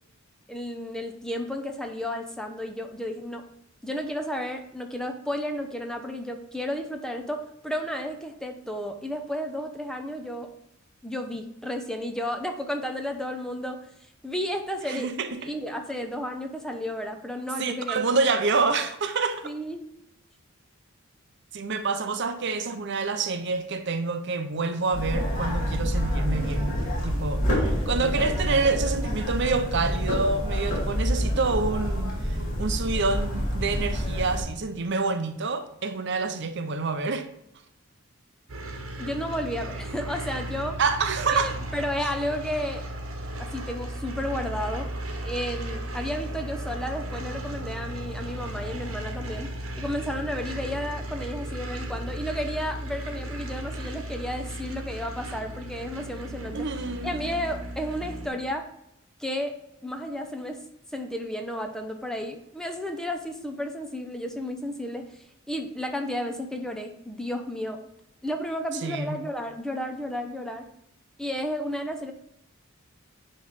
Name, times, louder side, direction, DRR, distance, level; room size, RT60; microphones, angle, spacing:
voice 1, 0.5-3.4 3.8-10.5 11.0-13.8 14.2-15.1 15.5-18.2 19.4-19.8 28.0-28.1 39.0-40.8 41.3-42.8 43.3-44.9 45.2-49.5 49.8-56.7 57.0-58.7 59.2-59.5 59.8-60.6 60.9-67.9 68.2-70.7 71.2-72.1, equal, 5° left, 0.6 m, -32 dB
voice 2, 14.9-15.5 17.6-19.5 21.5-37.3 40.8-41.5 56.5-57.1 68.8-69.2, right 4 dB, 55° right, 0.7 m, -27 dB
sound 1, 24.9-34.4, equal, 40° left, 2.4 m, -27 dB
sound 2, 38.5-58.3, right 1 dB, 85° right, 1.3 m, -35 dB
9.4 x 3.2 x 5.7 m
head